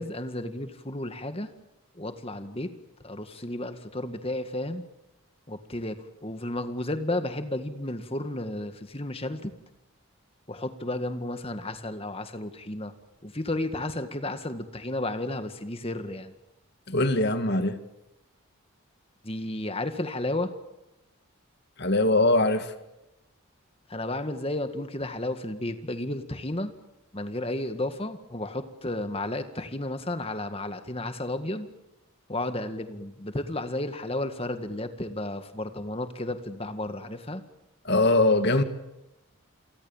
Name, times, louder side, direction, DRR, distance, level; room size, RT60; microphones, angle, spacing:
voice 1, 0.0-1.5 1.9-2.7 3.0-4.8 5.5-9.5 10.5-12.9 13.2-16.3 19.2-20.5 23.9-26.7 27.1-31.7 32.3-37.4, left 1 dB, 25° left, 1.9 m, -32 dB
voice 2, 16.9-17.8 21.8-22.7 37.9-38.6, left 2 dB, 50° left, 2.1 m, -22 dB
28.5 x 23.5 x 7.3 m
head